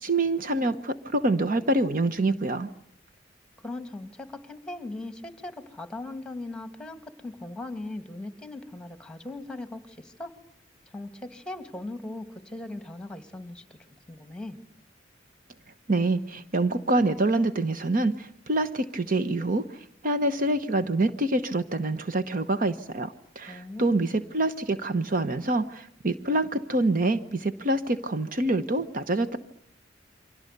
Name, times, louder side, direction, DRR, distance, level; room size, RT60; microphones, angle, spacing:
voice 1, 0.0-2.7 15.9-29.4, right 2 dB, 50° right, 10 dB, 1.1 m, -26 dB
voice 2, 3.6-10.3 10.9-13.8 14.1-14.6 23.5-24.1, left 2 dB, 5° left, 8 dB, 2.3 m, -39 dB
29.0 x 24.5 x 6.8 m, 0.67 s
head